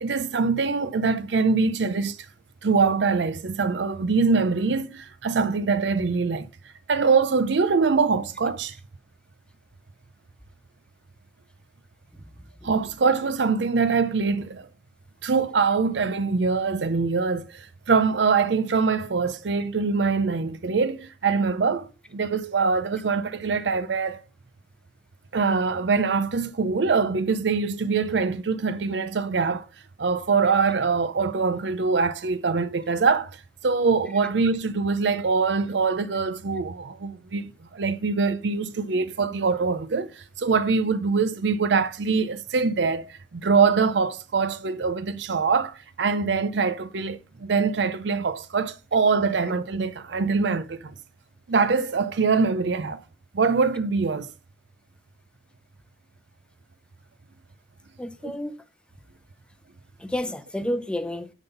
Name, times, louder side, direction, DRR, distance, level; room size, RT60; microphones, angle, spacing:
voice 1, 0.0-2.2 2.6-6.5 6.9-8.8 12.6-14.7 15.2-24.2 25.3-29.7 30.0-50.9 51.5-53.0 53.3-54.3 58.2-58.3, right 4 dB, 70° right, 0.6 m, -23 dB
voice 2, 58.0-58.6 60.0-61.3, left 1 dB, 5° left, 0.6 m, -30 dB
10.5 x 4.0 x 5.4 m
head